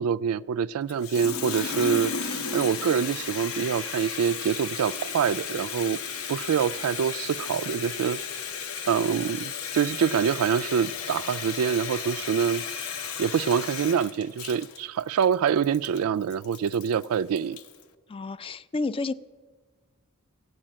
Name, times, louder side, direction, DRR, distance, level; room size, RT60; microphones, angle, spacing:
voice 1, 0.0-6.0 6.3-8.2 8.9-12.6 13.2-17.6, right 7 dB, 75° right, 0.3 m, -25 dB
Water tap faucet, 0.9-17.8, left 6 dB, 70° left, 0.8 m, -34 dB
voice 2, 18.1-19.1, left 3 dB, 25° left, 0.3 m, -30 dB
14.5 x 8.1 x 8.8 m
head